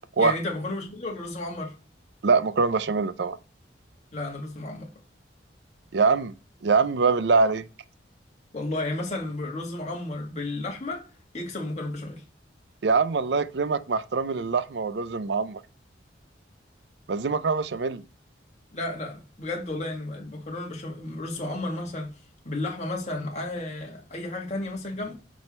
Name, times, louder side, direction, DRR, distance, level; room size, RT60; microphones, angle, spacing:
voice 1, 0.2-1.7 4.1-4.9 8.5-11.0 11.3-12.2 18.7-22.1 22.4-25.1, left 2 dB, 40° left, 2.1 m, -32 dB
voice 2, 2.2-3.4 5.9-6.3 6.6-7.7 12.8-15.6 17.1-18.0, right 4 dB, 65° right, 0.5 m, -23 dB
6.2 x 5.3 x 4.4 m
head